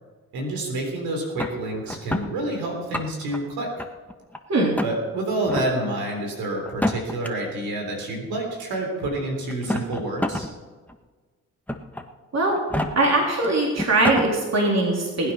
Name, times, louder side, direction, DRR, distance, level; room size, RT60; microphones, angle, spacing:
voice 1, 0.3-3.8 4.8-10.5, right 1 dB, 90° right, 1 dB, 3.7 m, -28 dB
sound 1, 1.4-2.3 2.8-3.4 3.8-4.4 4.7-4.9 5.4-5.7 6.7-7.3 8.3-8.4 9.5-10.5 10.9-11.0 11.7-12.0 12.6-12.9 13.4-13.5 13.8-14.3, left 1 dB, 5° left, 1.4 m, -27 dB
voice 2, 13.0-15.3, right 2 dB, 50° right, -2 dB, 3.6 m, -21 dB
19.5 x 9.2 x 5.7 m, 1.4 s
supercardioid pair, 55°, 35 cm